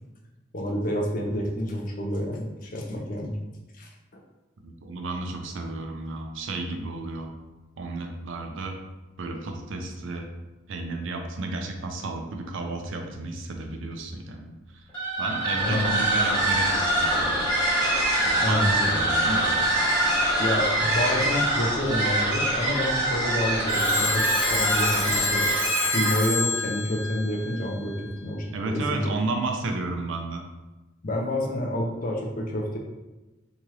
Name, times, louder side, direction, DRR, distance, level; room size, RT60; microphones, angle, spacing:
voice 1, 0.5-3.4 3.7-4.2 15.6-15.8 18.4-19.1 20.4-24.2 24.5-25.5 25.8-27.9 28.2-29.1 31.0-32.8, left 1 dB, 40° left, 0 dB, 0.5 m, -28 dB
voice 2, 4.6-7.3 7.8-8.8 9.2-10.3 10.7-14.8 15.2-17.4 18.3-19.6 28.5-30.4, right 2 dB, 75° right, 3 dB, 0.4 m, -32 dB
sound 1, 14.9-26.3, right 1 dB, 25° left, 1.3 m, -24 dB
Telephone, 23.7-27.9, left 2 dB, 5° right, 0.8 m, -27 dB
2.9 x 2.4 x 3.1 m, 1.1 s
head